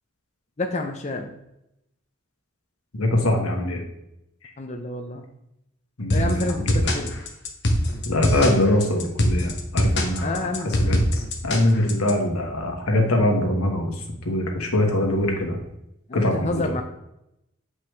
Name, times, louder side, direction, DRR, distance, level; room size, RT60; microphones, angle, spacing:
voice 1, 0.6-1.3 4.6-5.2 6.1-7.1 10.2-10.9 16.1-16.8, left 2 dB, 30° left, 4 dB, 0.6 m, -29 dB
voice 2, 2.9-3.8 6.0-6.9 8.0-15.6 16.1-16.6, left 1 dB, 90° left, 1 dB, 1.6 m, -23 dB
sound 1, 6.1-12.1, left 1 dB, 55° left, 1.1 m, -23 dB
8.1 x 5.3 x 3.3 m, 0.84 s
head